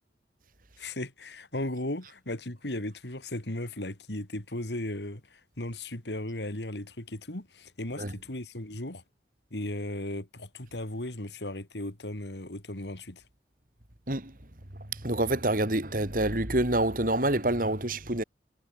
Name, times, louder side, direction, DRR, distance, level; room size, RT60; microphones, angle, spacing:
voice 1, 0.8-9.0 9.5-13.2, left 1 dB, 80° left, 3.5 m, -36 dB
voice 2, 14.1-14.4 14.7-18.2, right 1 dB, 50° right, 3.2 m, -27 dB
head